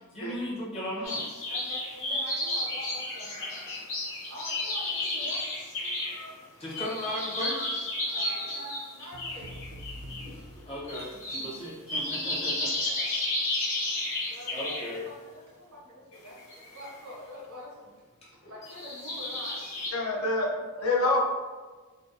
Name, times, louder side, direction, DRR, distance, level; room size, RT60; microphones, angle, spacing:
voice 1, 0.1-1.2 6.6-7.7 10.7-12.8 14.5-15.0 18.2-18.3, left 1 dB, 25° left, -6 dB, 0.6 m, -36 dB
sound 1, 1.0-6.4 6.7-10.3 10.6-14.9 16.1-17.1 18.4-19.9, left 1 dB, 60° left, 0.9 m, -32 dB
voice 2, 1.5-3.3 4.3-5.4 8.0-10.0 11.1-11.5 12.8-13.1 14.3-17.9 18.3-19.6 19.9-20.9, equal, 75° right, -5 dB, 0.8 m, -45 dB
sound 2, 9.1-11.4, equal, 55° right, 0.3 m, -45 dB
voice 3, 19.9-20.5 20.8-21.2, left 2 dB, 75° left, -1 dB, 0.5 m, -26 dB
2.6 x 2.0 x 2.4 m, 1.3 s
head